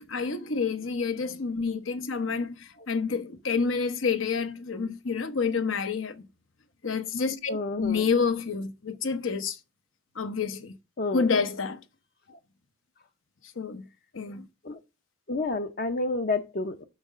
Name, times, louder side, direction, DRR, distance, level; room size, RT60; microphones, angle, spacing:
voice 1, 0.0-6.2 6.8-9.6 10.2-10.8 11.1-11.8 13.6-13.9 14.1-14.5, left 5 dB, 70° left, 0.9 m, -28 dB
voice 2, 7.5-8.1 11.0-11.3 12.3-12.4 14.6-14.8 15.3-16.9, left 3 dB, 45° left, 0.7 m, -30 dB
6.4 x 6.2 x 6.1 m
head